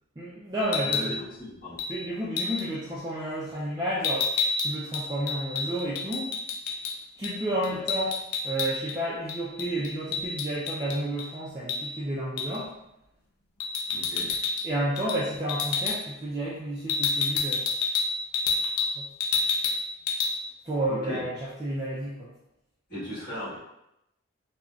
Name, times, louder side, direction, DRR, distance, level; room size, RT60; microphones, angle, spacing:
voice 1, 0.2-1.2 1.9-6.3 7.2-8.2 8.4-12.7 14.6-17.7 19.0-19.1 20.6-22.3, right 1 dB, 20° right, -7 dB, 0.3 m, -31 dB
sound 1, 0.6-1.1 1.8-1.9 2.4-2.7 4.0-6.9 7.2-7.4 7.6-9.0 9.3-11.3 11.7-11.8 12.4-12.6 13.6-14.7 15.0-15.2 15.5-16.0 16.9-18.9 19.2-19.8 20.1-20.3, left 4 dB, 85° left, 0.4 m, -28 dB
voice 2, 0.8-1.8 7.7-7.8 13.9-14.4 20.9-21.2 22.9-23.6, left 1 dB, 40° left, -11 dB, 1.3 m, -37 dB
3.7 x 2.1 x 2.3 m, 0.84 s
head